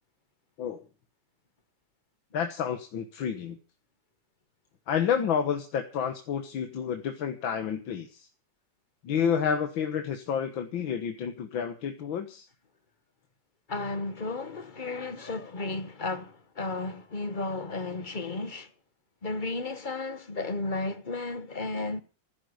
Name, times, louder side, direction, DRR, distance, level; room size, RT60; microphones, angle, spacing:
voice 1, 2.3-3.6 4.9-8.3 9.0-12.5, left 7 dB, 90° left, 2.1 m, -30 dB
voice 2, 13.7-18.7 19.2-22.0, left 3 dB, 30° left, 1.3 m, -33 dB
15.0 x 10.0 x 8.0 m
omnidirectional pair, 2.1 m